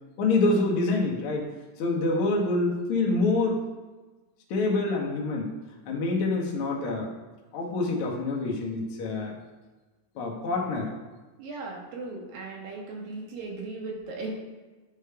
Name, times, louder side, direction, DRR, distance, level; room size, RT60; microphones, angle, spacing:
voice 1, 0.2-1.5 1.8-3.6 4.5-5.5 5.8-7.1 7.5-9.3 10.1-10.9, left 3 dB, 80° left, -2 dB, 1.2 m, -26 dB
voice 2, 11.4-14.3, right 3 dB, 80° right, -1 dB, 2.8 m, -37 dB
9.8 x 4.9 x 2.3 m, 1.2 s
omnidirectional pair, 4.0 m